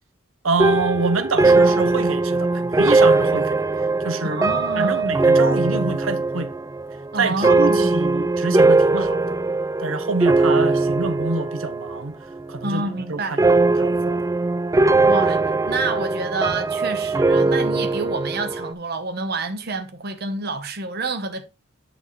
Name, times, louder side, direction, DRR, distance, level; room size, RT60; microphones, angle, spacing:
voice 1, 0.4-3.6 4.0-4.4 4.8-6.5 7.2-9.4 9.8-12.2 12.5-12.8 13.1-13.4 13.8-14.2, right 3 dB, 75° right, 1.0 m, -26 dB
sound 1, 0.6-12.1 12.3-12.9 13.4-18.7, right 3 dB, 15° right, 0.3 m, -20 dB
voice 2, 4.2-5.1 7.1-8.1 12.6-13.4 15.1-21.4, right 3 dB, 50° right, 1.0 m, -28 dB
8.7 x 6.3 x 3.2 m
head